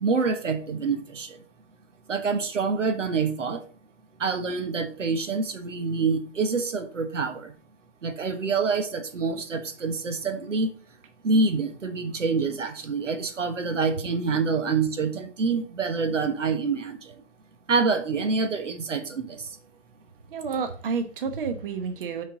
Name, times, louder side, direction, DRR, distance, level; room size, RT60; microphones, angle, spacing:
voice 1, 0.0-1.4 2.1-3.6 4.2-7.5 8.0-10.7 11.2-17.2 17.7-19.5, right 4 dB, 85° right, 8 dB, 1.4 m, -26 dB
voice 2, 20.3-22.2, right 5 dB, 45° right, 8 dB, 1.0 m, -30 dB
6.6 x 4.9 x 4.8 m, 0.42 s
hypercardioid pair, 155°, 37 cm